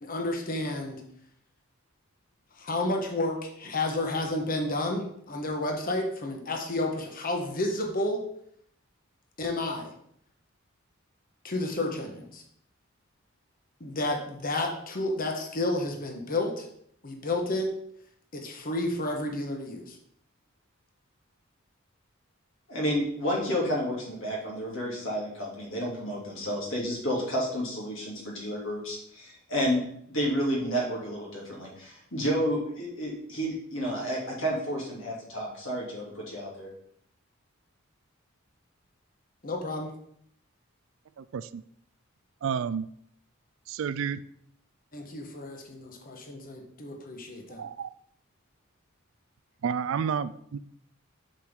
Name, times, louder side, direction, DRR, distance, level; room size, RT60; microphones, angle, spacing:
voice 1, 0.0-1.0 2.6-8.2 9.4-9.9 11.4-12.4 13.8-16.7 17.0-17.7 18.3-20.0 39.4-39.9 44.9-47.6, left 2 dB, 45° left, 3 dB, 1.2 m, -31 dB
voice 2, 22.7-29.8 30.1-36.7, equal, 65° left, -3 dB, 2.8 m, -30 dB
voice 3, 41.2-41.6 42.4-42.9 43.7-44.2 47.6-47.9 49.6-50.6, right 7 dB, 70° right, 15 dB, 0.4 m, -30 dB
7.3 x 6.2 x 3.7 m, 0.68 s
head